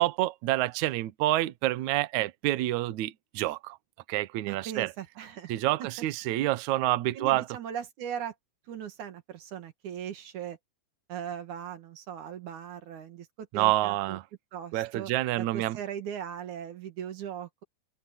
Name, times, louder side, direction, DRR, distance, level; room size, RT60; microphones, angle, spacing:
voice 1, 0.0-3.8 4.1-4.9 5.5-7.5 13.5-14.2 14.7-15.8, right 16 dB, 70° right, 1.8 m, -28 dB
voice 2, 4.5-5.5 5.8-6.1 7.1-8.3 8.7-10.6 11.1-14.2 14.5-15.1 15.4-17.6, right 9 dB, 55° right, 3.0 m, -39 dB
open air
omnidirectional pair, 4.5 m